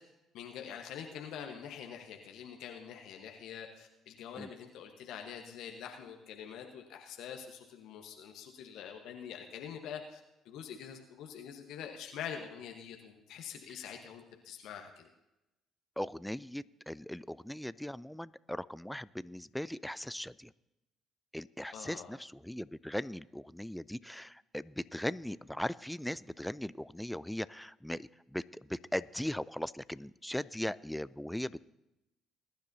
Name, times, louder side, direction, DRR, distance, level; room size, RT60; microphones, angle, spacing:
voice 1, 0.3-10.2 10.4-15.1 21.7-22.1, left 8 dB, 70° left, 3 dB, 1.1 m, -45 dB
voice 2, 16.0-20.5 21.3-31.6, equal, 5° left, 18 dB, 0.3 m, -39 dB
21.0 x 10.5 x 2.7 m, 0.93 s
hypercardioid pair, 55°, 0 cm